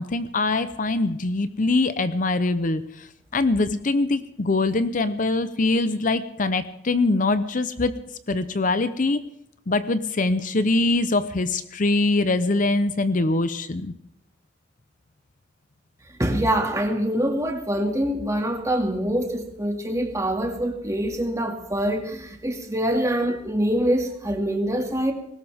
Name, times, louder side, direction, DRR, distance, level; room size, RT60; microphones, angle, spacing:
voice 1, 0.0-3.1 3.3-7.9 8.3-9.2 9.7-13.9, left 2 dB, 45° left, 12 dB, 0.7 m, -23 dB
voice 2, 16.2-25.1, right 1 dB, 15° right, 3 dB, 2.2 m, -25 dB
20.0 x 18.5 x 3.5 m, 0.76 s
head